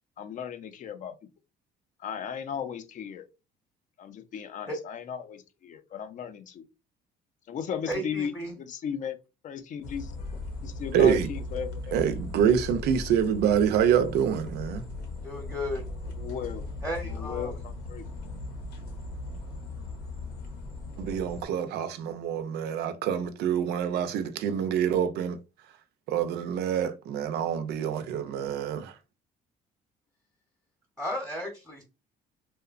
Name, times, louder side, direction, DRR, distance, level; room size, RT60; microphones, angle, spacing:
voice 1, 0.2-1.1 2.0-3.3 4.0-6.7 7.5-9.2 9.4-10.1 10.6-12.0 16.2-16.6 17.0-18.1, left 7 dB, 50° left, 0.5 m, -36 dB
voice 2, 7.9-8.6 15.2-15.8 16.8-17.5 31.0-31.8, equal, 5° left, 0.7 m, -34 dB
sound 1, 9.8-21.4, left 2 dB, 85° left, 0.8 m, -38 dB
voice 3, 10.9-11.3 11.9-14.8 21.0-25.4 26.1-28.9, right 8 dB, 75° right, 0.4 m, -26 dB
2.8 x 2.1 x 2.4 m
cardioid pair, 110°, 17 cm